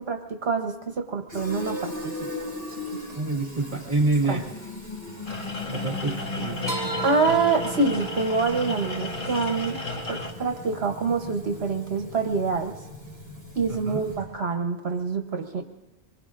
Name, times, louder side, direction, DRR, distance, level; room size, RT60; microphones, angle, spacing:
voice 1, 0.0-2.1 2.4-2.5 4.3-4.4 7.0-9.8 10.1-12.7 13.5-15.6, right 4 dB, 65° right, 5 dB, 1.2 m, -26 dB
Fill (with liquid), 1.3-14.4, left 2 dB, 15° left, 5.1 m, -38 dB
voice 2, 3.1-4.4 5.7-6.7 13.7-14.1, right 2 dB, 45° right, 1 dB, 1.8 m, -27 dB
sound 1, 5.3-10.3, left 2 dB, 50° left, 1.7 m, -34 dB
sound 2, 6.7-13.2, right 3 dB, 20° right, 2.4 m, -38 dB
24.5 x 21.5 x 2.5 m, 0.98 s
omnidirectional pair, 1.2 m